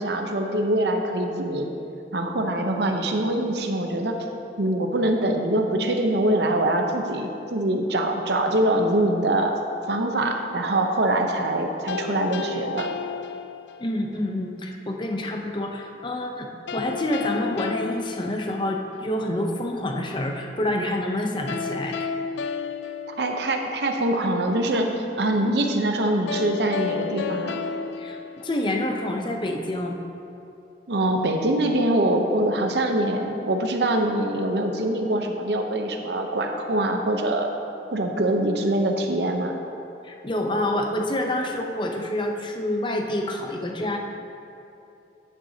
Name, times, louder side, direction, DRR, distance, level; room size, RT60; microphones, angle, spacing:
voice 1, 0.0-1.7 2.1-4.2 4.6-9.5 9.9-12.9 23.2-27.6 30.9-37.5 37.9-39.5, right 1 dB, 65° right, 4 dB, 0.8 m, -24 dB
sound 1, 11.9-14.0 16.7-19.1 21.5-24.0 26.3-29.1, left 6 dB, 75° left, 0.3 m, -32 dB
voice 2, 13.8-22.1 28.0-30.0 40.0-44.0, left 1 dB, 25° left, 3 dB, 0.6 m, -27 dB
10.5 x 8.9 x 2.8 m, 2.8 s
head